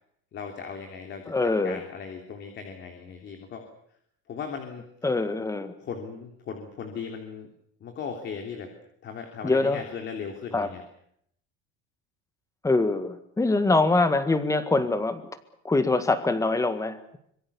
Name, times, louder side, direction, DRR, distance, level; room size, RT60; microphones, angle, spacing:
voice 1, 0.3-1.3 1.6-3.6 4.3-4.8 5.8-7.5 7.8-8.7 9.0-10.8, left 6 dB, 40° left, 4 dB, 3.3 m, -37 dB
voice 2, 1.3-1.8 5.0-5.7 9.4-9.8 10.5-10.7 12.6-15.2 15.6-17.2, left 3 dB, 10° left, 10 dB, 1.8 m, -24 dB
25.5 x 22.5 x 7.1 m, 0.71 s
cardioid pair, 150°, 29 cm